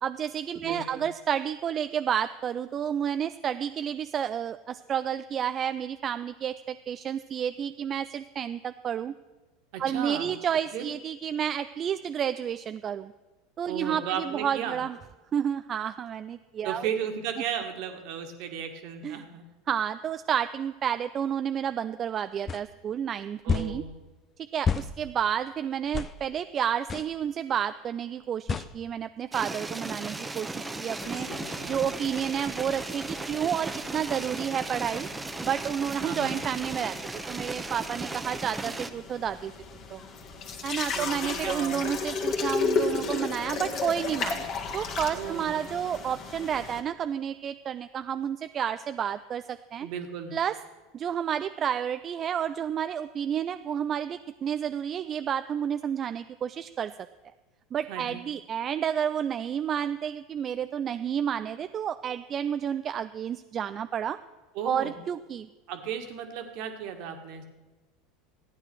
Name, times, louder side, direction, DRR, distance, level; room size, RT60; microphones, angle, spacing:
voice 1, 0.0-9.1 9.8-13.1 13.6-15.0 15.3-16.9 19.0-19.2 19.7-23.8 24.5-31.3 31.7-35.1 35.4-37.0 37.3-39.5 39.9-40.0 40.6-49.9 50.3-50.6 50.9-56.9 57.7-64.2 64.6-65.5, right 8 dB, 35° right, 11 dB, 0.4 m, -30 dB
voice 2, 0.6-1.1 9.7-10.3 10.7-10.9 13.7-14.8 16.6-19.4 23.4-23.9 31.3-31.9 36.0-36.4 40.9-41.8 42.1-42.3 45.1-45.6 49.8-50.3 57.9-58.2 64.5-64.9 65.7-67.4, right 8 dB, 60° right, 6 dB, 1.7 m, -35 dB
sound 1, 22.5-22.6 23.5-23.7 24.7-24.9 25.9-26.1 26.9-27.1 28.5-28.7, left 6 dB, 30° left, 0.6 m, -28 dB
sound 2, 29.3-38.9, right 2 dB, 15° right, 0.9 m, -36 dB
sound 3, 31.0-46.8, left 4 dB, 45° left, 1.8 m, -35 dB
14.5 x 9.6 x 6.2 m, 1.2 s
hypercardioid pair, 80°, 0 cm